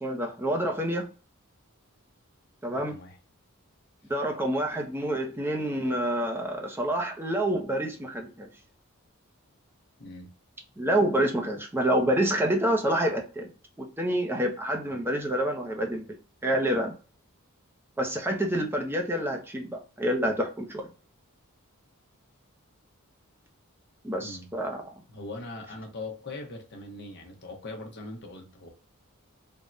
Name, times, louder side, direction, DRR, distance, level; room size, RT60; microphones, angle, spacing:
voice 1, 0.0-1.1 2.6-2.9 4.1-8.5 10.8-13.5 13.8-16.1 16.4-16.9 18.0-20.9 24.0-24.8, right 1 dB, 10° right, 0.5 m, -27 dB
voice 2, 2.7-3.2 10.0-10.3 24.2-24.5 25.1-28.7, left 2 dB, 50° left, 0.8 m, -41 dB
3.5 x 2.1 x 2.5 m
head